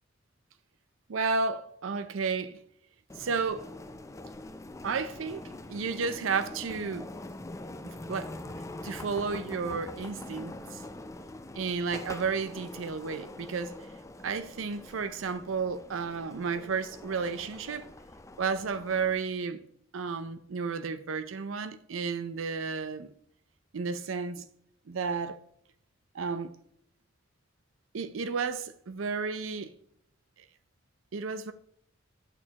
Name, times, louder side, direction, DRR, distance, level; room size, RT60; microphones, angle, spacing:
voice 1, 1.1-2.6 3.2-3.7 4.8-5.4 5.7-7.1 8.1-8.3 8.8-10.8 11.6-13.7 14.2-17.9 18.4-19.6 19.9-23.1 23.7-24.4 24.9-25.4 26.1-26.5 27.9-29.7 31.1-31.5, right 5 dB, 85° right, 0.5 m, -32 dB
sound 1, 3.1-19.1, left 2 dB, 15° left, 0.4 m, -44 dB
8.3 x 6.5 x 2.9 m
head